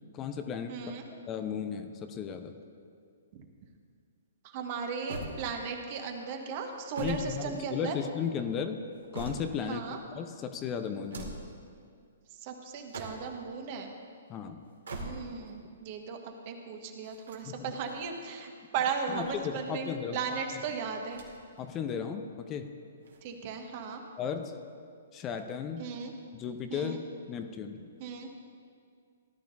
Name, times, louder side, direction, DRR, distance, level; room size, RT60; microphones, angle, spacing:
voice 1, 0.1-0.7 1.1-2.6 7.0-8.8 9.1-9.8 10.1-11.3 14.3-14.6 17.4-17.7 19.1-20.2 21.6-22.7 24.2-24.6 25.1-25.9 26.3-27.0 27.3-27.9, left 7 dB, 25° left, 7 dB, 0.8 m, -35 dB
voice 2, 0.7-1.1 4.4-8.0 9.7-10.0 12.4-13.9 14.9-21.2 23.2-24.0 25.8-26.1 26.7-27.0 28.0-28.3, right 5 dB, 40° right, 3 dB, 1.5 m, -36 dB
sound 1, 5.1-5.9 6.7-8.1 8.7-9.8 10.9-11.6 12.7-13.5 14.6-15.5 17.0-18.0 18.9-19.8 21.0-21.6 21.9-22.0 23.0-23.8, right 2 dB, 70° right, 2.3 m, -43 dB
18.0 x 12.0 x 2.7 m, 2.2 s
figure-of-eight pair, 125°, 0 cm